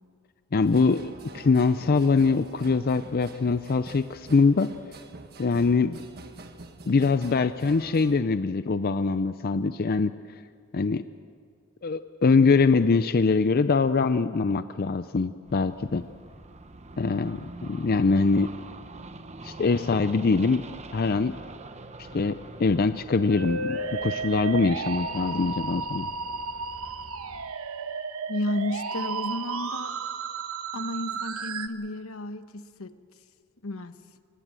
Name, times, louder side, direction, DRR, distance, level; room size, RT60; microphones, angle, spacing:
voice 1, 0.5-4.7 5.4-6.0 6.9-10.1 10.7-11.0 11.8-16.0 17.0-18.5 19.4-20.6 20.9-21.3 22.1-26.1, left 4 dB, 45° left, 12 dB, 0.5 m, -23 dB
sound 1, 0.6-8.2, right 2 dB, 45° right, 1.5 m, -46 dB
sound 2, 15.4-27.5, right 2 dB, 30° right, 1.0 m, -45 dB
Musical instrument, 23.3-31.7, right 4 dB, 75° right, 1.1 m, -33 dB
voice 2, 28.3-30.0 30.7-33.0 33.6-34.0, left 1 dB, 75° left, 11 dB, 1.0 m, -32 dB
24.5 x 20.0 x 7.6 m, 2.2 s
head